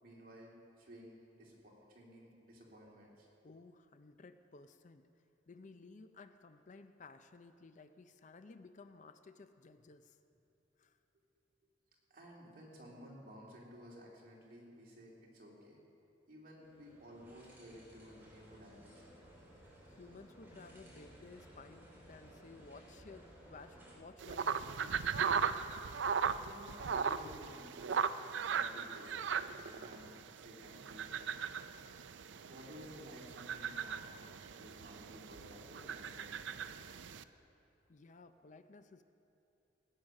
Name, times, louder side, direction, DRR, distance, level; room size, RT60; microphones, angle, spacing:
voice 1, 0.0-3.3 12.1-15.8 16.3-19.2 26.4-28.0 28.4-31.1 32.4-36.3, equal, 50° right, -3 dB, 2.8 m, -54 dB
voice 2, 3.4-5.1 5.5-10.2 10.8-11.0 19.9-25.1 25.4-25.6 37.9-39.0, left 3 dB, 40° left, 10 dB, 0.5 m, -56 dB
sound 1, 16.6-24.0, right 1 dB, 10° right, 3.1 m, -58 dB
sound 2, 24.2-37.2, right 6 dB, 70° right, 0.4 m, -38 dB
17.0 x 9.0 x 6.4 m, 2.9 s
head